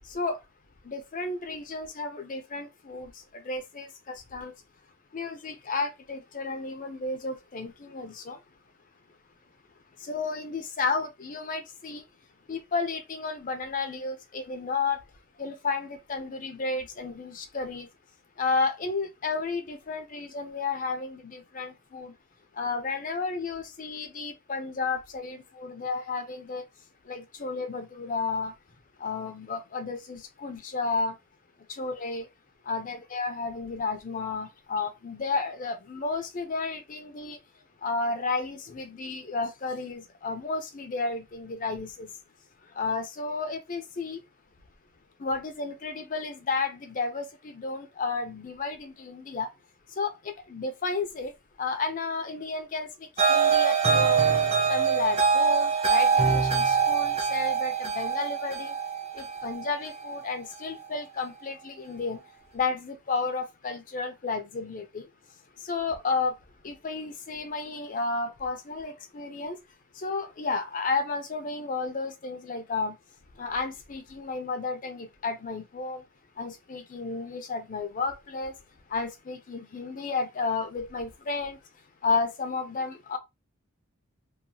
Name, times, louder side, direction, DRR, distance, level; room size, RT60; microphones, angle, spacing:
voice 1, 0.0-0.4 0.8-4.5 5.1-8.4 10.0-12.0 12.5-15.0 15.4-17.9 18.4-22.2 22.5-26.6 27.0-28.5 29.0-31.2 31.7-32.3 32.6-37.4 37.8-42.1 42.7-44.2 45.2-49.5 49.9-51.3 51.6-54.2 54.7-58.8 59.1-62.2 62.5-65.1 65.6-66.4 66.6-69.6 69.9-73.0 73.4-76.0 76.4-78.6 78.9-81.6 82.0-83.2, left 4 dB, 40° left, 0.5 m, -32 dB
sound 1, 53.2-60.3, right 6 dB, 30° right, 0.5 m, -24 dB
2.8 x 2.2 x 2.7 m
head